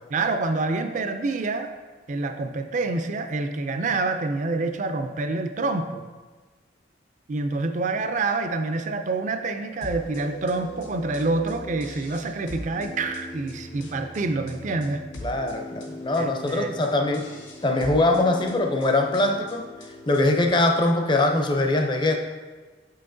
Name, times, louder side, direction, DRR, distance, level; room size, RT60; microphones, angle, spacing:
voice 1, 0.1-1.7 2.1-6.0 7.3-15.0 16.2-16.7, right 3 dB, 40° right, 7 dB, 0.4 m, -27 dB
sound 1, 9.8-20.5, equal, 80° left, 1.1 m, -40 dB
voice 2, 15.2-17.3 17.6-22.2, left 2 dB, 25° left, 4 dB, 0.5 m, -22 dB
6.7 x 5.6 x 2.6 m, 1.3 s
head